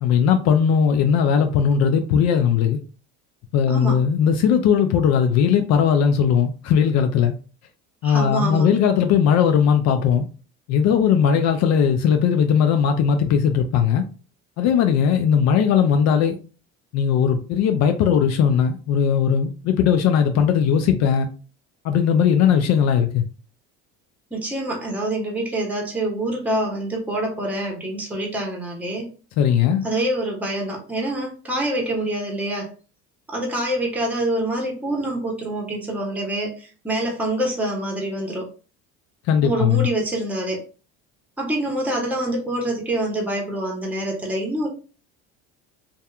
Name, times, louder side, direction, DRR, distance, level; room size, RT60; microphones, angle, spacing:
voice 1, 0.0-2.8 3.5-7.3 8.0-10.3 10.7-14.1 14.6-16.4 16.9-21.3 21.8-23.2 29.4-29.8 39.3-39.9, left 7 dB, 55° left, 0.4 m, -18 dB
voice 2, 3.7-4.0 8.0-8.7 24.3-29.1 29.8-32.7 33.3-38.5 39.4-40.6 41.4-44.7, right 1 dB, 5° right, 0.8 m, -26 dB
2.6 x 2.3 x 2.3 m
supercardioid pair, 90°, 32 cm